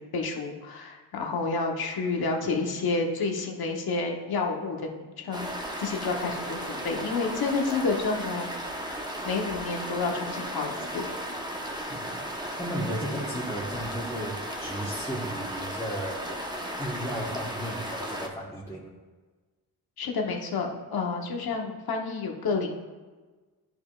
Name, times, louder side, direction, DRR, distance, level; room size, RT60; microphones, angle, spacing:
voice 1, 0.0-5.5 5.8-8.5 9.2-11.0 20.0-22.7, left 4 dB, 65° left, 1 dB, 1.2 m, -30 dB
sound 1, 5.3-18.3, equal, 10° right, 1.0 m, -35 dB
voice 2, 12.6-16.3 16.8-18.9, equal, 5° left, -6 dB, 1.3 m, -34 dB
10.5 x 5.1 x 2.4 m, 1.3 s
cardioid pair, 70°, 40 cm